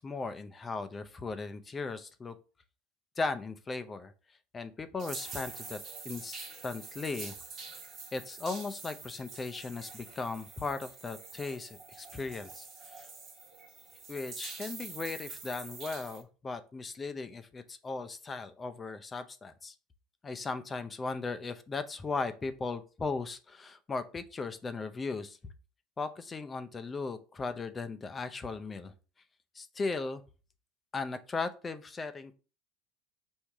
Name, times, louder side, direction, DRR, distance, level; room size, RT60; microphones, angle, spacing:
voice 1, 0.0-2.4 3.2-4.1 4.5-5.8 6.0-7.3 8.1-13.1 14.1-19.7 20.2-25.4 26.0-28.9 29.6-30.2 30.9-32.3, left 4 dB, 25° left, 10 dB, 0.5 m, -37 dB
sound 1, 5.0-16.2, right 4 dB, 45° right, 1.2 m, -46 dB
4.6 x 2.7 x 3.5 m, 0.35 s
supercardioid pair, 95°, 0 cm